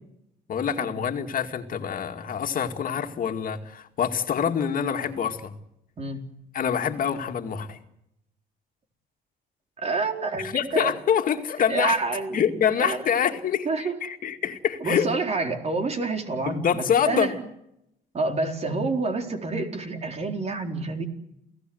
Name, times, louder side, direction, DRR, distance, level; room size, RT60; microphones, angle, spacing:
voice 1, 0.5-5.5 6.5-7.8 10.5-12.0 12.3-15.1 16.5-17.3, left 8 dB, 50° left, 5 dB, 2.4 m, -26 dB
voice 2, 9.8-10.9 11.7-13.0 13.7-14.0 14.8-17.5 18.1-21.1, right 3 dB, 35° right, 5 dB, 4.1 m, -28 dB
29.5 x 17.5 x 8.0 m, 0.80 s
cardioid pair, 130°, 18 cm